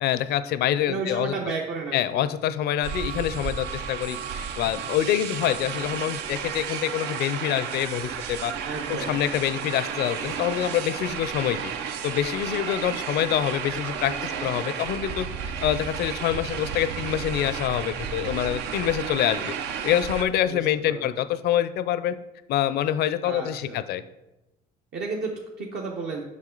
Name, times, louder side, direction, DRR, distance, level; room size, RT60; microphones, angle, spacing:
voice 1, 0.0-1.3 1.9-8.5 8.9-11.6 12.0-14.1 14.4-15.3 15.6-19.5 19.8-22.2 22.5-24.0, left 11 dB, 70° left, 14 dB, 0.5 m, -26 dB
voice 2, 0.9-2.3 8.6-9.2 14.0-14.6 20.4-20.6 20.9-21.2 23.2-23.8 24.9-26.2, right 4 dB, 70° right, -2 dB, 1.0 m, -33 dB
sound 1, 2.8-20.2, right 7 dB, 90° right, 0.6 m, -33 dB
7.4 x 5.8 x 3.9 m, 0.97 s
cardioid pair, 110°, 17 cm